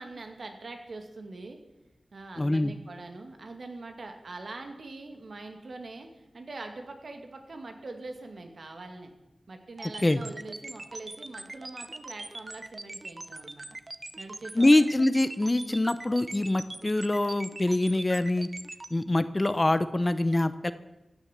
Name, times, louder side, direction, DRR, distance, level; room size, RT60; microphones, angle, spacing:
voice 1, 0.0-1.6 2.1-9.1 9.5-13.6 14.2-14.7, right 2 dB, 65° right, 5 dB, 2.4 m, -43 dB
voice 2, 2.4-2.7 10.0-10.2 14.6-18.5 18.9-20.7, left 2 dB, 25° left, 13 dB, 0.7 m, -24 dB
sound 1, 9.8-18.9, right 2 dB, 35° right, 0.9 m, -41 dB
16.0 x 10.5 x 7.4 m, 0.95 s
wide cardioid pair, 110°, 0 cm